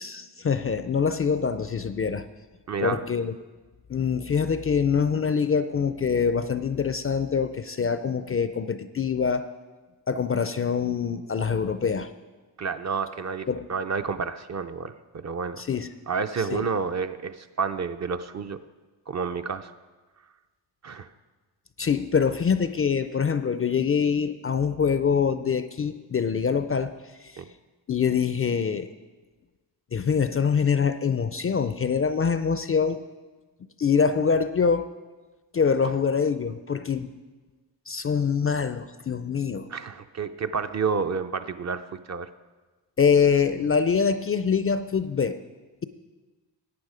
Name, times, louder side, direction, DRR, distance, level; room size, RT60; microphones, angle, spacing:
voice 1, 0.0-2.2 2.8-3.3 3.9-9.5 10.1-12.1 13.5-13.7 15.6-15.9 16.5-16.6 21.8-26.9 27.2-27.4 27.9-28.9 29.9-33.0 33.8-34.9 35.5-37.1 37.9-39.7 43.0-45.4, left 6 dB, 35° left, 11 dB, 0.4 m, -24 dB
voice 2, 2.7-3.0 12.6-15.6 16.1-18.6 19.1-19.7 20.8-21.1 27.4-27.5 39.7-42.3, right 5 dB, 40° right, 9 dB, 0.5 m, -30 dB
10.5 x 8.6 x 4.9 m, 1.3 s
cardioid pair, 85°, 44 cm